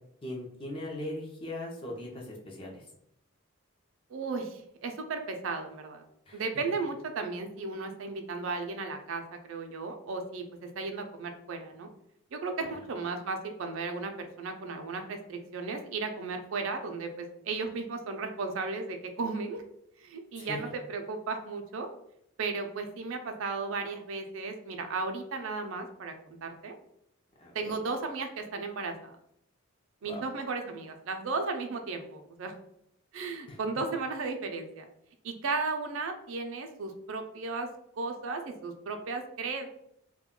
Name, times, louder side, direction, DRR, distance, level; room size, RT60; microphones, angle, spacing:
voice 1, 0.2-2.8 6.3-6.4 20.4-20.6 27.4-27.7 30.0-30.2 33.5-33.6, left 1 dB, 25° left, -1 dB, 0.5 m, -39 dB
voice 2, 4.1-6.0 6.3-11.9 12.3-19.6 20.0-21.9 22.4-26.7 27.5-29.2 30.0-32.6 33.1-34.9 35.2-37.7 38.0-39.7, right 4 dB, 60° right, 5 dB, 0.4 m, -35 dB
2.2 x 2.2 x 3.6 m, 0.75 s
head